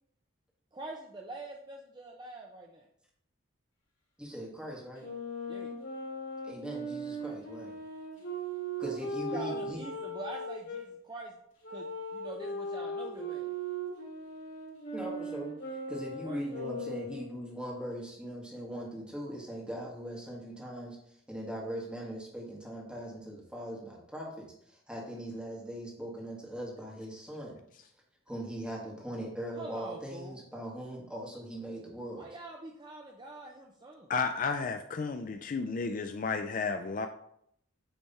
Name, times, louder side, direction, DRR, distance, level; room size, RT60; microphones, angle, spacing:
voice 1, 0.7-2.9 5.5-5.7 9.0-11.4 11.7-13.5 16.2-16.4 29.6-30.4 32.2-34.1, right 2 dB, 20° right, 1 dB, 0.5 m, -45 dB
voice 2, 4.2-5.1 6.4-7.8 8.8-9.8 14.9-15.5 15.9-27.6 28.3-32.3, right 1 dB, 5° right, -3 dB, 1.5 m, -40 dB
Wind instrument woodwind instrument, 5.0-10.8 11.6-17.4, right 1 dB, 65° left, 2.7 m, -38 dB
voice 3, 34.1-37.1, left 4 dB, 40° left, 7 dB, 0.3 m, -32 dB
8.8 x 3.3 x 4.1 m, 0.72 s
head